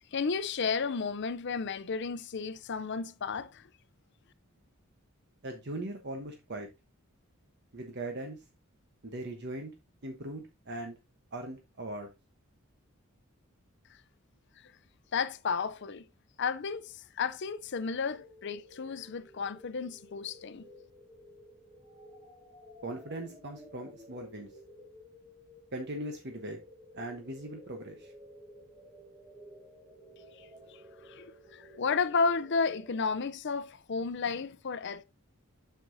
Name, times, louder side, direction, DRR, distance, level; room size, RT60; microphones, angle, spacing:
voice 1, 0.1-3.7 15.1-16.1 16.4-20.6 30.4-35.0, left 5 dB, 55° left, 0.5 m, -33 dB
voice 2, 5.4-6.7 7.7-8.4 9.0-9.7 10.0-11.0 11.3-12.1 22.8-24.5 25.7-26.6 26.9-28.1, right 1 dB, 55° right, 1.0 m, -39 dB
sound 1, 18.0-33.2, left 1 dB, 15° right, 1.3 m, -54 dB
7.8 x 6.8 x 2.6 m
head